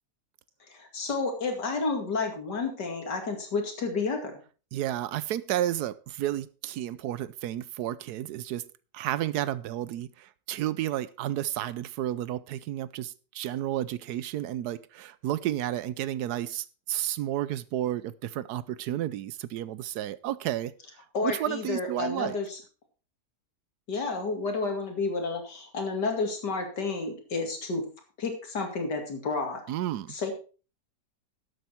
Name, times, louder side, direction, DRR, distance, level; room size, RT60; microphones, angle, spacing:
voice 1, 0.7-4.4 21.1-22.6 23.9-27.8 28.2-29.6 30.1-30.3, left 3 dB, 65° left, 3 dB, 3.0 m, -31 dB
voice 2, 4.7-8.6 8.9-20.7 21.0-22.4 29.7-30.1, right 12 dB, 70° right, 17 dB, 1.1 m, -32 dB
12.0 x 8.1 x 4.4 m, 0.36 s
omnidirectional pair, 1.9 m